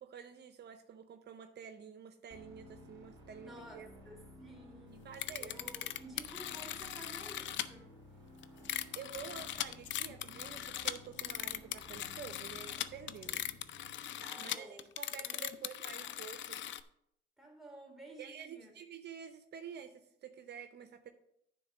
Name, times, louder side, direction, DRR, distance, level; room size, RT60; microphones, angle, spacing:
voice 1, 0.0-3.9 5.0-5.5 8.9-13.4 14.4-16.6 18.2-21.1, right 7 dB, 60° right, 8 dB, 0.7 m, -49 dB
sound 1, 2.3-14.3, left 1 dB, 20° right, 3.3 m, -55 dB
voice 2, 3.4-8.0 14.2-14.9 15.2-16.4 17.4-18.7, right 1 dB, ahead, -2 dB, 3.1 m, -53 dB
sound 2, 5.1-7.7 8.4-16.8, left 11 dB, 70° left, 0.5 m, -40 dB
10.0 x 3.7 x 7.0 m, 0.76 s
cardioid pair, 90°, 20 cm